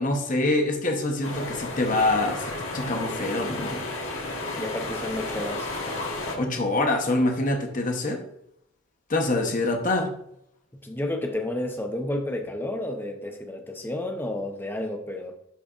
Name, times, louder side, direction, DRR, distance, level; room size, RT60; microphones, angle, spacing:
voice 1, 0.0-3.8 6.3-8.2 9.1-10.1, left 2 dB, 35° left, 3 dB, 0.9 m, -25 dB
sound 1, 1.2-6.4, left 2 dB, 70° left, 1.5 m, -32 dB
voice 2, 4.6-5.7 10.8-15.4, left 1 dB, 10° left, 4 dB, 0.6 m, -31 dB
10.0 x 4.1 x 2.4 m, 0.76 s
head